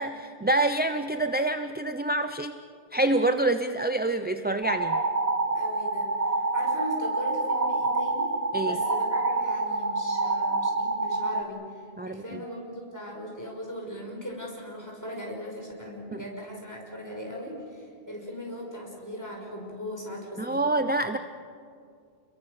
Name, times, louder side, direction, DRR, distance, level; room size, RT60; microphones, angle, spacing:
voice 1, 0.0-2.6 2.9-5.0 8.5-8.8 12.0-12.4 16.1-16.2 20.4-21.2, right 2 dB, 10° right, 8 dB, 0.5 m, -26 dB
sound 1, 4.6-11.4, right 2 dB, 35° right, 1.4 m, -27 dB
voice 2, 5.3-8.3 8.6-20.6, equal, 15° left, -1 dB, 5.8 m, -39 dB
30.0 x 22.0 x 6.7 m, 2.3 s
omnidirectional pair, 1.1 m